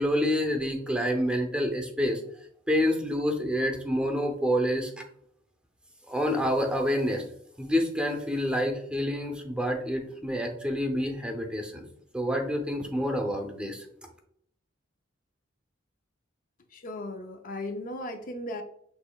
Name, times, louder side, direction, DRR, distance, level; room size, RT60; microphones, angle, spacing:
voice 1, 0.0-2.2 2.7-4.9 6.1-7.2 7.6-11.8 12.1-13.8, equal, 5° right, 3 dB, 0.6 m, -28 dB
voice 2, 16.7-18.6, left 1 dB, 45° left, 5 dB, 0.4 m, -36 dB
6.3 x 3.0 x 2.3 m, 0.68 s
head